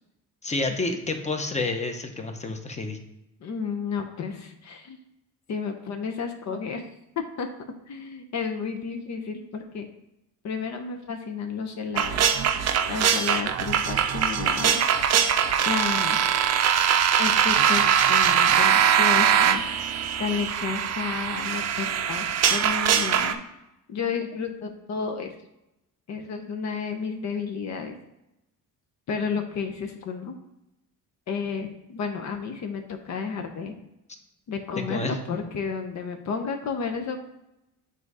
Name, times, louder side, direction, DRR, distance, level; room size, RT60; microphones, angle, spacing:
voice 1, 0.4-3.0 34.9-35.2, left 3 dB, 20° left, 5 dB, 0.8 m, -29 dB
voice 2, 3.4-5.0 5.5-6.9 7.4-7.5 7.9-9.9 10.4-12.5 12.9-14.8 15.6-16.2 17.2-17.8 18.1-19.6 20.2-23.4 23.9-25.3 26.1-28.0 29.1-30.4 31.3-33.7 34.5-37.2, left 5 dB, 55° left, 5 dB, 0.7 m, -32 dB
sound 1, 12.0-23.3, right 8 dB, 50° right, 0.5 m, -22 dB
7.5 x 2.7 x 4.8 m, 0.89 s
cardioid pair, 100°, 33 cm